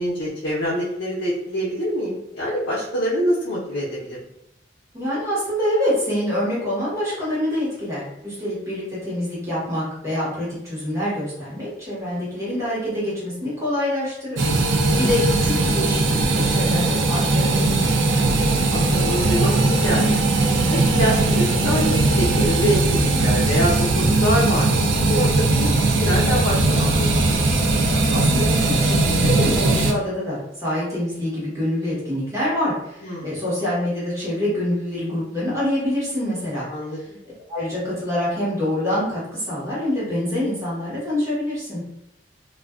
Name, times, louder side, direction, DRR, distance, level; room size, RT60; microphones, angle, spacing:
voice 1, 0.0-4.2 14.8-15.1 18.2-20.1 20.7-27.1 33.0-33.3 36.6-37.2, equal, 70° left, -7 dB, 0.6 m, -25 dB
voice 2, 4.9-17.9 27.9-36.7 37.5-41.8, left 1 dB, 15° right, -8 dB, 1.1 m, -26 dB
sound 1, 14.4-29.9, right 2 dB, 80° right, 0.4 m, -19 dB
2.4 x 2.2 x 2.3 m, 0.79 s
head